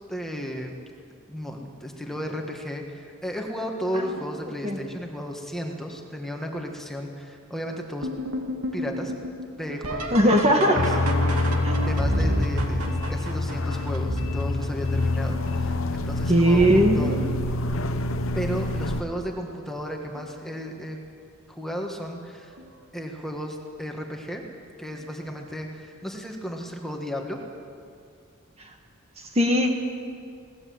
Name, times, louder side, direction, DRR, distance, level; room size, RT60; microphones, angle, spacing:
voice 1, 0.1-0.7 1.3-8.1 8.7-9.1 9.6-10.9 11.8-17.3 18.3-21.0 21.5-22.5 22.9-24.4 24.8-27.4, equal, ahead, 1 dB, 1.7 m, -34 dB
sound 1, 8.0-15.7 16.4-16.9 17.3-18.0 19.3-19.4 20.1-20.4 22.6-22.7 25.0-25.1, right 1 dB, 90° right, 2.4 m, -31 dB
voice 2, 10.1-10.8 11.6-11.8 16.3-17.4 28.6-28.7 29.2-29.7, equal, 30° right, 3 dB, 1.6 m, -20 dB
sound 2, 10.8-19.0, left 2 dB, 70° left, 1.0 m, -26 dB
21.0 x 18.5 x 7.9 m, 2.3 s
head